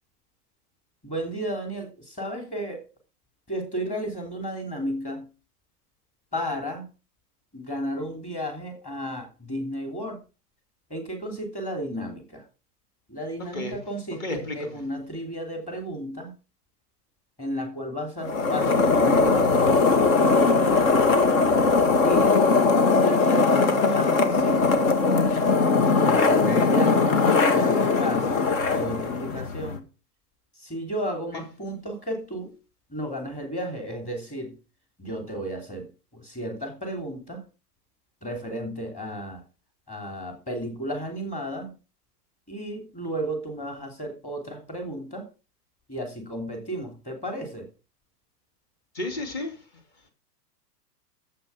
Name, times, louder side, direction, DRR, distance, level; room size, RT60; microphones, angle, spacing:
voice 1, 1.0-2.8 3.5-5.3 6.3-6.9 7.5-10.2 10.9-12.4 13.1-16.3 17.4-20.8 22.0-22.4 22.9-25.0 26.1-27.1 27.5-29.8 30.5-32.5 32.9-34.5 35.0-35.9 36.1-37.4 38.2-39.4 39.9-41.7 42.5-45.2 45.9-47.7, equal, 15° left, 3 dB, 3.1 m, -33 dB
voice 2, 14.2-14.5 26.5-26.7 48.9-49.5, left 2 dB, 30° left, 6 dB, 2.8 m, -31 dB
sound 1, 18.2-29.8, left 4 dB, 55° left, 2.0 m, -20 dB
11.0 x 7.6 x 5.7 m, 0.32 s
hypercardioid pair, 155°, 48 cm